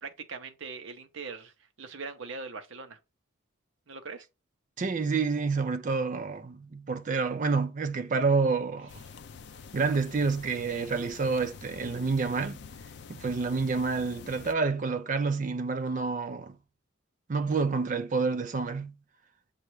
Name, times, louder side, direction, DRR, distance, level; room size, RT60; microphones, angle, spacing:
voice 1, 0.0-3.0 3.9-4.2 9.1-9.2, right 4 dB, 70° right, 0.8 m, -41 dB
voice 2, 4.8-8.9 9.7-12.6 13.1-16.6 17.3-18.9, right 4 dB, 40° right, 0.4 m, -28 dB
sound 1, 8.9-14.5, left 5 dB, 55° left, 0.4 m, -47 dB
6.5 x 2.4 x 3.1 m
head